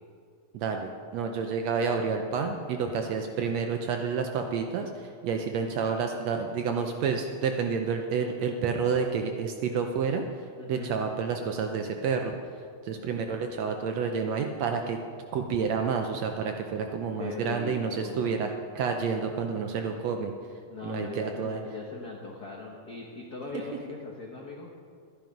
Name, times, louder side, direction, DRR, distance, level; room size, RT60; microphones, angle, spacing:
voice 1, 0.5-10.3 10.7-12.4 12.8-15.0 15.3-18.5 18.7-20.3 20.8-21.6, right 5 dB, 75° right, 4 dB, 1.7 m, -29 dB
voice 2, 10.6-11.0 17.2-18.4 20.7-24.7, left 4 dB, 65° left, -1 dB, 0.9 m, -40 dB
13.0 x 10.5 x 5.2 m, 2.3 s
omnidirectional pair, 3.6 m